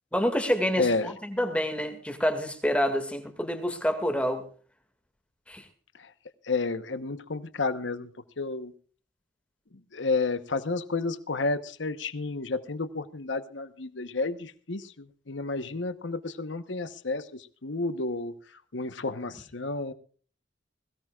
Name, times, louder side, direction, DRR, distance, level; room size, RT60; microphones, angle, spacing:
voice 1, 0.1-4.4 5.5-5.6, equal, 5° left, 6 dB, 2.0 m, -27 dB
voice 2, 0.8-1.1 6.0-6.1 6.4-8.1 8.4-8.7 9.9-18.3 18.7-19.9, left 3 dB, 80° left, 12 dB, 1.0 m, -31 dB
21.5 x 18.0 x 2.4 m, 0.40 s
head